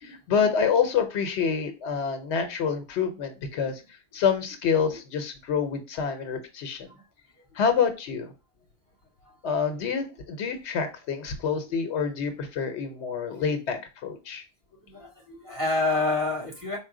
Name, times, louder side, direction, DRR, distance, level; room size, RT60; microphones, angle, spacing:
voice 1, 0.0-3.8 4.1-6.9 7.5-8.3 9.4-14.4, left 6 dB, 80° left, 7 dB, 0.9 m, -27 dB
voice 2, 14.8-16.8, left 2 dB, 15° right, -4 dB, 1.9 m, -29 dB
4.3 x 2.1 x 3.6 m, 0.30 s
omnidirectional pair, 1.1 m